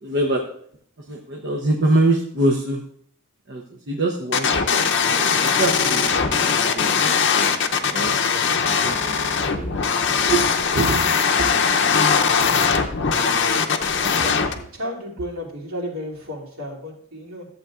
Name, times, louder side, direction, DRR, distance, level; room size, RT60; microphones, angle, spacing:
voice 1, 0.0-0.5 1.1-2.8 3.5-7.0 7.9-8.1 8.7-9.9 10.2-10.5 10.7-11.0 11.4-11.5 12.4-12.8 13.5-13.7, right 2 dB, 50° right, 1 dB, 0.8 m, -25 dB
sound 1, 4.3-14.5, left 6 dB, 50° left, 0.6 m, -20 dB
voice 2, 14.0-14.3 14.7-17.5, equal, 70° right, -4 dB, 2.7 m, -33 dB
14.0 x 7.8 x 2.4 m, 0.64 s
head